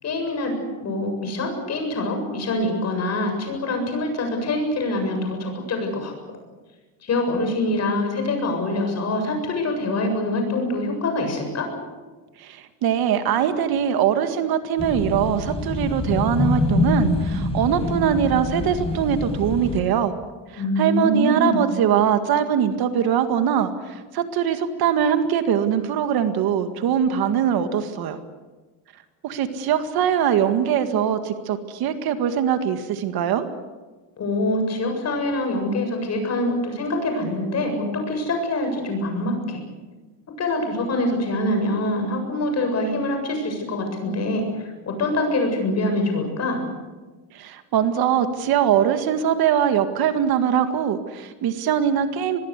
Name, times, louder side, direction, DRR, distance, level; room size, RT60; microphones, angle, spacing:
voice 1, 0.0-6.4 7.0-11.7 20.6-21.7 34.2-39.6 40.4-46.6, left 1 dB, 35° left, 4 dB, 7.5 m, -25 dB
voice 2, 12.4-20.2 20.5-28.2 29.2-33.4 47.3-52.4, right 8 dB, 55° right, 8 dB, 2.0 m, -22 dB
sound 1, 14.8-19.8, left 2 dB, 15° left, 5.3 m, -25 dB
25.0 x 21.5 x 8.3 m, 1.3 s
cardioid pair, 155°, 43 cm